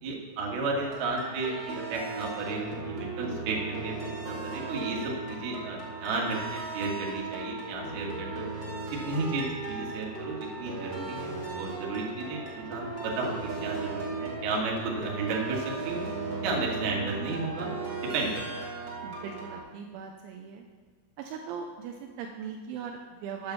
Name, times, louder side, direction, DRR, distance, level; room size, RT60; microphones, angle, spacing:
voice 1, 0.0-8.5 8.9-16.1 16.4-17.7 18.0-18.6, right 3 dB, 60° right, -2 dB, 3.4 m, -33 dB
sound 1, 0.8-19.6, right 3 dB, 35° right, 2.0 m, -37 dB
voice 2, 19.0-20.7 21.2-23.5, right 6 dB, 85° right, 2 dB, 3.0 m, -39 dB
8.9 x 8.7 x 7.1 m, 1.4 s
omnidirectional pair, 5.9 m